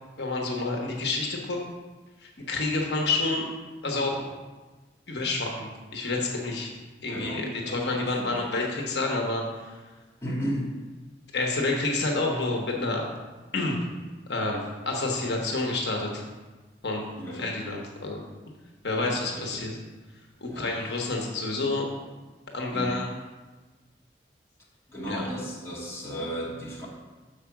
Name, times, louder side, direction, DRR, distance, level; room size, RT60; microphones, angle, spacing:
voice 1, 0.2-1.6 2.2-3.5 3.8-4.3 5.1-6.7 7.0-9.8 11.3-13.1 13.5-13.8 14.3-16.2 16.8-17.0 17.3-18.2 18.8-19.8 20.4-21.9 22.5-23.1 25.1-25.3, left 2 dB, 75° left, 0 dB, 1.1 m, -29 dB
voice 2, 7.1-8.4 10.2-10.7 17.2-17.4 19.0-19.6 20.5-20.7 22.7-23.0 24.9-26.9, equal, 15° left, -7 dB, 1.9 m, -34 dB
6.7 x 5.0 x 5.8 m, 1.3 s
head